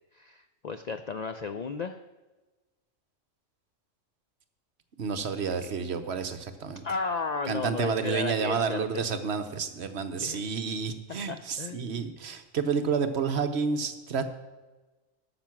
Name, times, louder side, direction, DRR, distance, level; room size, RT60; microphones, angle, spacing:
voice 1, 0.1-2.0 5.6-5.7 6.8-9.0 10.2-10.4 11.3-12.0, left 4 dB, 65° left, 8 dB, 0.4 m, -34 dB
voice 2, 5.0-6.8 7.5-14.4, right 5 dB, 60° right, 8 dB, 1.0 m, -30 dB
12.0 x 6.9 x 5.9 m, 1.2 s
omnidirectional pair, 1.3 m